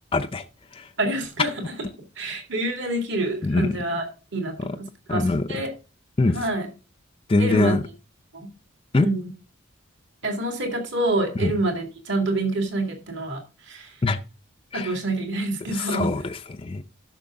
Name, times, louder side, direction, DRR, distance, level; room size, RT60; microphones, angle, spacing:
voice 1, 0.1-0.4 0.8-0.9 3.4-3.7 5.1-5.4 6.2-6.4 7.3-7.8 8.9-9.1 11.4-11.5 14.0-14.2 14.7-14.9 15.7-16.8, left 2 dB, 25° left, 0.4 m, -22 dB
voice 2, 1.0-1.7 2.2-4.1 4.3-5.7 6.3-6.7 7.4-7.8 8.3-8.5 9.0-9.3 10.2-14.0 14.7-16.1, right 2 dB, 55° right, 2.2 m, -27 dB
12.5 x 6.1 x 3.6 m
head